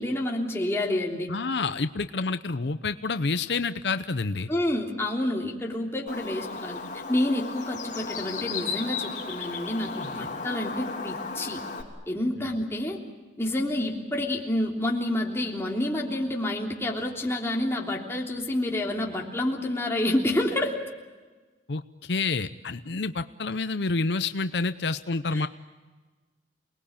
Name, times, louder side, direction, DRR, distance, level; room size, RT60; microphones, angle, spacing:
voice 1, 0.0-1.3 4.5-11.6 12.1-13.0 13.4-20.8 25.3-25.5, left 1 dB, 15° left, -1 dB, 3.3 m, -28 dB
voice 2, 1.3-4.5 21.7-25.5, left 3 dB, 75° left, 11 dB, 0.8 m, -28 dB
Bird, 6.1-11.8, left 4 dB, 45° left, 3.3 m, -35 dB
28.5 x 20.0 x 8.7 m, 1.3 s
head